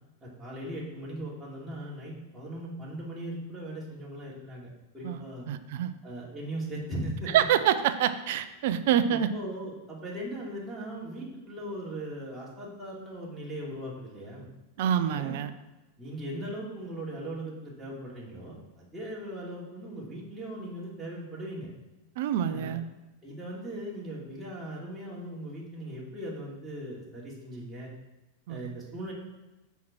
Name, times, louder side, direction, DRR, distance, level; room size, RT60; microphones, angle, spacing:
voice 1, 0.2-5.5 6.0-7.3 9.1-14.5 15.1-15.4 16.0-21.7 22.4-22.8 23.2-27.9 28.5-29.1, right 1 dB, 10° right, -6 dB, 2.8 m, -39 dB
voice 2, 5.5-5.9 7.3-9.3 14.8-15.5 22.2-22.8 28.5-28.6, right 10 dB, 50° right, 12 dB, 0.7 m, -26 dB
9.5 x 4.7 x 6.1 m, 1.1 s
figure-of-eight pair, 90°, 0 cm